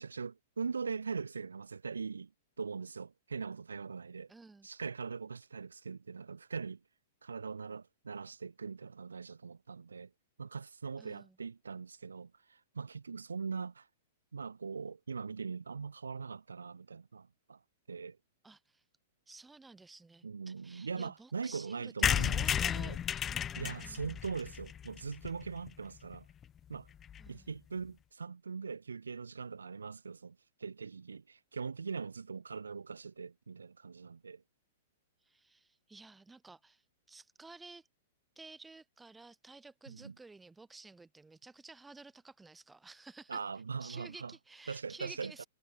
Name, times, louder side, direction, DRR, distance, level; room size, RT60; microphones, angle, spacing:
voice 1, 0.0-2.3 2.6-4.3 4.6-6.8 7.2-10.1 10.4-13.9 14.3-17.6 17.9-18.2 20.2-23.0 23.6-26.3 26.7-26.9 27.3-34.4 39.9-40.1 43.3-44.3 44.7-45.4, right 5 dB, 70° right, 2.8 m, -41 dB
voice 2, 4.3-4.7 11.0-11.4 18.4-18.8 19.3-23.0 23.2-24.2 27.2-27.5 35.2-36.8 37.1-37.9 38.4-43.4 43.8-45.5, right 3 dB, 10° right, 3.8 m, -53 dB
sound 1, 22.0-25.7 26.1-26.2 26.4-26.5 26.7-26.8 27.0-27.3, left 9 dB, 20° left, 0.5 m, -33 dB
figure-of-eight pair, 105°, 0 cm